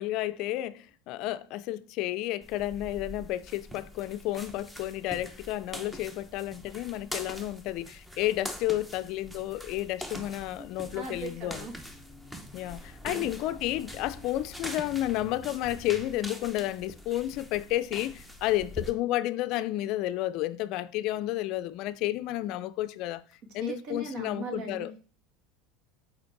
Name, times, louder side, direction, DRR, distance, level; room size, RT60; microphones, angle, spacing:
voice 1, 0.0-11.7 12.5-23.2 23.5-24.9, left 15 dB, 60° left, 0.4 m, -31 dB
sound 1, 2.4-18.9, equal, 5° right, 0.8 m, -43 dB
voice 2, 10.6-11.7 13.1-13.3 23.6-25.1, right 3 dB, 55° right, 1.7 m, -39 dB
5.1 x 4.4 x 4.6 m
supercardioid pair, 120°, 0 cm